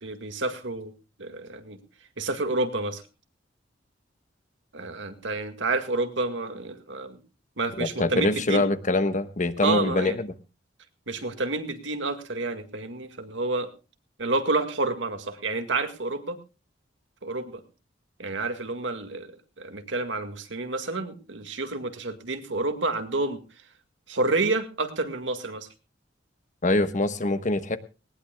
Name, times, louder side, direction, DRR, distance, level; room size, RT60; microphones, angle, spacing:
voice 1, 0.0-1.8 2.2-3.0 4.7-7.2 7.6-8.6 9.6-10.2 11.1-13.7 14.2-16.4 17.2-17.6 18.2-23.4 24.1-25.7, right 2 dB, 75° right, 7 dB, 2.0 m, -29 dB
voice 2, 7.8-10.3 26.6-27.8, left 2 dB, 40° left, 11 dB, 1.1 m, -24 dB
19.5 x 18.5 x 2.3 m, 0.32 s
head